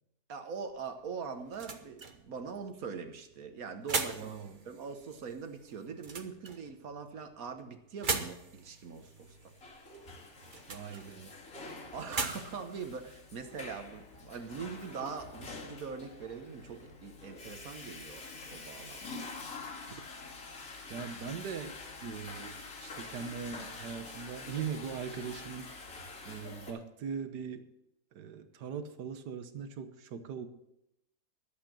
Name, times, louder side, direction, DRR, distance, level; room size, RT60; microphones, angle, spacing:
voice 1, 0.3-4.3 4.6-9.5 11.9-19.1, right 5 dB, 60° right, 1.4 m, -42 dB
sound 1, 0.7-14.2, right 4 dB, 35° right, 0.9 m, -42 dB
voice 2, 4.1-4.6 10.7-11.3 19.9-20.0 20.9-25.7 26.3-27.7 28.1-30.5, right 6 dB, 75° right, 1.6 m, -40 dB
Water / Toilet flush, 9.2-26.7, left 3 dB, 50° left, 2.8 m, -46 dB
11.5 x 8.2 x 7.4 m
omnidirectional pair, 1.8 m